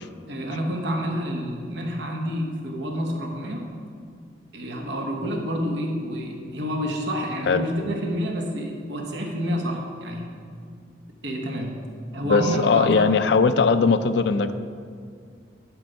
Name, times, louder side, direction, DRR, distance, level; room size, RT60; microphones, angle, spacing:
voice 1, 0.3-3.7 4.5-10.3 10.8-10.9 11.2-11.8 12.1-13.1, equal, 65° right, 2 dB, 1.1 m, -28 dB
voice 2, 12.2-14.5, left 4 dB, 65° left, 11 dB, 0.4 m, -19 dB
10.5 x 4.6 x 5.3 m, 2.2 s
head